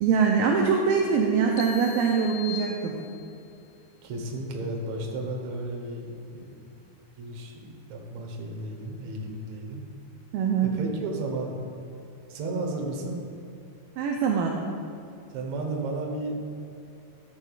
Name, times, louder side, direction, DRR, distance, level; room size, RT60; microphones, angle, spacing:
voice 1, 0.0-2.9 10.3-10.7 14.0-14.6, right 6 dB, 80° right, 0 dB, 2.0 m, -23 dB
sound 1, 1.6-3.5, left 9 dB, 80° left, 2.4 m, -40 dB
voice 2, 4.0-6.5 7.2-7.5 7.9-9.8 10.6-11.6 12.3-13.3 15.3-16.4, right 2 dB, 65° right, 0 dB, 1.9 m, -33 dB
13.0 x 9.0 x 2.4 m, 2.6 s
omnidirectional pair, 4.6 m